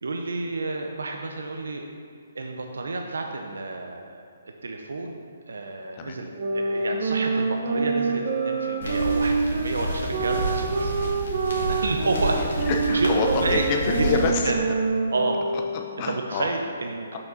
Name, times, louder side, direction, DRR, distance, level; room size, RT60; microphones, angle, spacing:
voice 1, 0.0-1.8 2.3-4.2 4.6-11.1 11.7-12.6 12.9-13.1 13.4-13.6 14.0-14.1 14.4-14.6 15.1-15.4 16.1-17.1, right 3 dB, 90° right, 3 dB, 0.5 m, -30 dB
sound 1, 6.4-16.0, right 4 dB, 45° right, 0.7 m, -26 dB
sound 2, 8.8-14.3, equal, 65° left, 1.5 m, -30 dB
voice 2, 12.3-14.5 15.5-16.5 17.1-17.2, left 5 dB, 25° left, 3 dB, 0.5 m, -28 dB
5.6 x 5.2 x 3.9 m, 2.2 s
hypercardioid pair, 165°, 0 cm